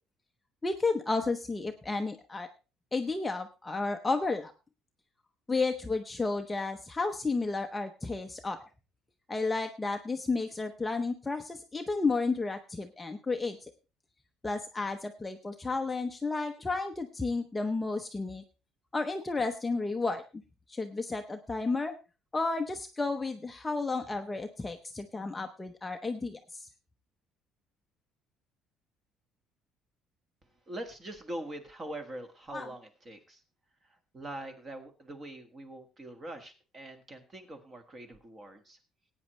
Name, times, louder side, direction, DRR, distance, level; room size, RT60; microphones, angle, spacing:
voice 1, 0.6-2.5 2.9-4.5 5.5-8.6 9.3-13.7 14.4-18.4 18.9-20.4 20.7-21.9 22.3-26.7 32.5-32.7, left 3 dB, 10° left, 5 dB, 0.7 m, -32 dB
voice 2, 30.7-33.4 33.8-38.8, right 1 dB, 20° right, 7 dB, 1.6 m, -43 dB
18.5 x 9.0 x 3.1 m, 0.32 s
cardioid pair, 170°, 0 cm